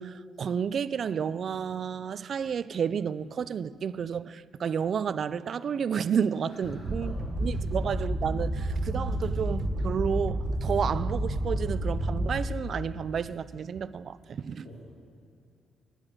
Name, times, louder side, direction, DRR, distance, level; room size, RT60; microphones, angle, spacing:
voice 1, 0.0-7.1 7.4-14.7, right 7 dB, 55° right, 0.3 m, -31 dB
voice 2, 6.5-7.7 14.6-14.8, left 1 dB, 80° left, 2.9 m, -45 dB
sound 1, 6.8-12.7, right 1 dB, 35° right, 1.0 m, -30 dB
10.5 x 9.7 x 6.1 m
cardioid pair, 90°, 0 cm